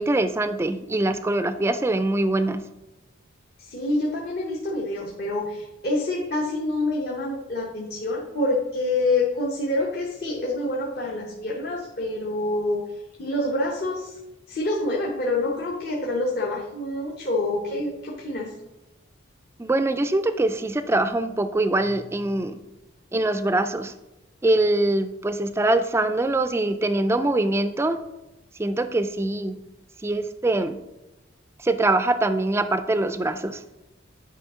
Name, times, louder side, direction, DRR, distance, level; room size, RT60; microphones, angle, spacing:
voice 1, 0.0-2.6 19.6-22.6 23.1-23.9 24.4-28.0 28.6-29.6 30.0-30.8 31.6-33.6, right 2 dB, 15° right, 11 dB, 0.3 m, -23 dB
voice 2, 3.6-12.8 13.2-14.2 14.5-18.5, left 2 dB, 55° left, -2 dB, 0.9 m, -27 dB
9.7 x 4.9 x 3.6 m, 0.97 s
head